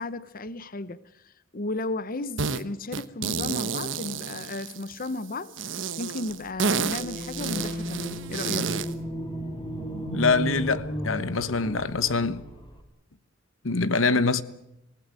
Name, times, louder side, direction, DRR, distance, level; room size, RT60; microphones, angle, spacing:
voice 1, 0.0-8.7, left 2 dB, 45° left, 0.9 m, -34 dB
sound 1, 2.4-2.6 2.9-5.1 5.6-8.9, right 5 dB, 65° right, 1.2 m, -30 dB
sound 2, 6.8-12.8, equal, 25° left, 3.7 m, -34 dB
voice 2, 9.9-12.4 13.6-14.4, left 4 dB, 80° left, 1.2 m, -24 dB
27.0 x 18.0 x 9.0 m
head